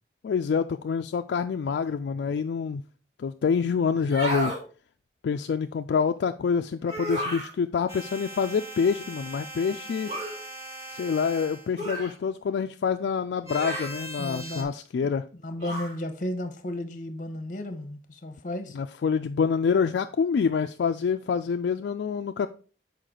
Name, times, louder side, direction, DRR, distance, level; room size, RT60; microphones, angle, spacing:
voice 1, 0.2-2.8 3.2-4.5 5.2-10.1 10.9-15.2 18.7-22.5, left 6 dB, 70° left, 0.3 m, -26 dB
sound 1, 4.0-4.6 6.8-7.5 10.1-10.4 11.8-12.1 13.5-14.0 15.6-16.0, equal, 40° right, 2.4 m, -32 dB
sound 2, 7.9-11.7 13.5-14.6, right 2 dB, 15° right, 1.0 m, -40 dB
voice 2, 14.2-14.7 15.0-18.8, left 1 dB, 45° left, 0.9 m, -34 dB
6.5 x 4.8 x 3.8 m
head